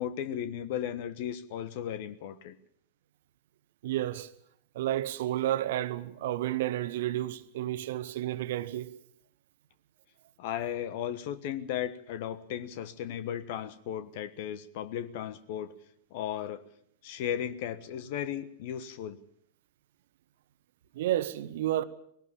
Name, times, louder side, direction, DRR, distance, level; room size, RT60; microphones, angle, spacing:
voice 1, 0.0-2.6 10.4-15.7 16.1-16.6 17.0-19.2, left 10 dB, 50° left, 1.3 m, -35 dB
voice 2, 3.8-4.3 4.7-8.9 20.9-21.8, right 13 dB, 55° right, 1.2 m, -31 dB
20.0 x 18.0 x 7.1 m
figure-of-eight pair, 90°, 0 cm